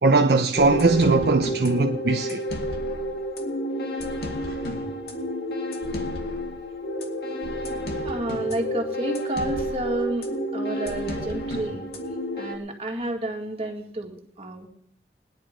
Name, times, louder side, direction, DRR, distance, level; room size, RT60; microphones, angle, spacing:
voice 1, 0.0-2.4, right 3 dB, 60° right, 0.7 m, -20 dB
sound 1, 0.5-12.5, equal, 60° left, 2.0 m, -30 dB
voice 2, 8.0-11.9 12.3-14.7, right 1 dB, 35° right, 2.0 m, -30 dB
19.0 x 10.5 x 5.1 m
head